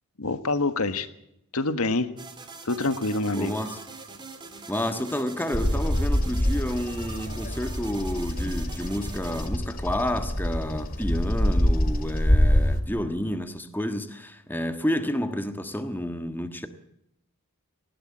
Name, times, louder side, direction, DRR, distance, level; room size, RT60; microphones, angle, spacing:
voice 1, 0.2-1.1 1.5-2.1 2.6-3.6, left 2 dB, 75° left, 1.5 m, -26 dB
sound 1, 2.2-9.5, right 4 dB, 20° right, 2.4 m, -43 dB
voice 2, 3.3-3.8 4.7-16.7, left 1 dB, 10° left, 1.5 m, -30 dB
Bird vocalization bird call bird song, 5.5-12.8, equal, 40° left, 2.5 m, -25 dB
19.0 x 16.5 x 8.7 m
head